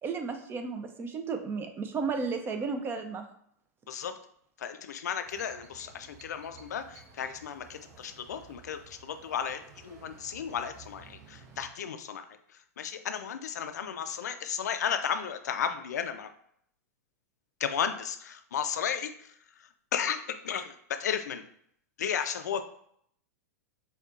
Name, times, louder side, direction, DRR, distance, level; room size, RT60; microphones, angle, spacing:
voice 1, 0.0-3.2, right 5 dB, 25° right, 6 dB, 0.5 m, -33 dB
voice 2, 3.9-4.2 4.6-12.2 12.8-16.3 17.6-20.2 20.4-21.4 22.0-22.6, left 8 dB, 80° left, 9 dB, 0.4 m, -34 dB
sound 1, 5.2-11.7, right 4 dB, 55° right, 0.9 m, -54 dB
4.3 x 2.3 x 2.4 m, 0.67 s
hypercardioid pair, 105°, 9 cm